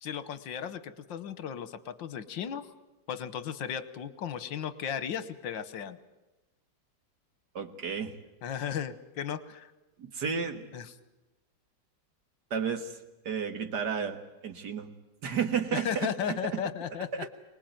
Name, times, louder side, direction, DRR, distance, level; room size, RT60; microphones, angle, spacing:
voice 1, 0.0-2.7 3.1-6.0 8.4-9.7 10.7-10.9 15.7-17.1, left 8 dB, 80° left, 13 dB, 1.8 m, -35 dB
voice 2, 7.6-8.2 10.0-10.7 12.5-13.0 13.3-14.9 15.2-16.6 17.1-17.3, right 6 dB, 60° right, 8 dB, 2.1 m, -32 dB
24.5 x 20.0 x 9.2 m, 1.0 s
omnidirectional pair, 2.0 m